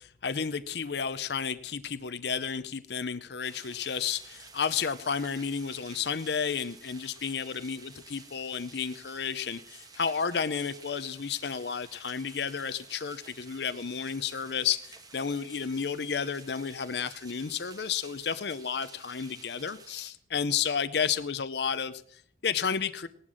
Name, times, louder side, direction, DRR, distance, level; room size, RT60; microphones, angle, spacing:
voice 1, 0.0-23.1, left 6 dB, 65° left, 13 dB, 0.6 m, -32 dB
sound 1, 3.4-20.1, right 4 dB, 20° right, 1.5 m, -52 dB
18.5 x 11.5 x 6.3 m, 0.63 s
head